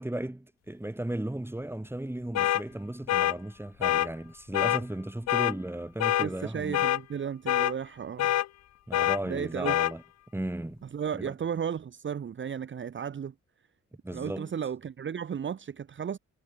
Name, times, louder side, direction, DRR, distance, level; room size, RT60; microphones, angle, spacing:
voice 1, 0.0-6.9 8.9-10.0 10.3-10.8 11.2-11.3 14.0-14.5, right 1 dB, 10° right, 5.0 m, -35 dB
sound 1, 2.4-2.6 3.1-3.4 3.8-4.1 4.5-4.8 5.3-5.5 6.0-6.3 6.7-7.0 7.5-7.7 8.2-8.5 8.9-9.2 9.6-9.9, left 13 dB, 60° left, 0.7 m, -25 dB
voice 2, 6.2-8.4 9.2-9.8 10.9-13.3 14.1-16.2, right 7 dB, 40° right, 1.2 m, -34 dB
cardioid pair, 90°, 30 cm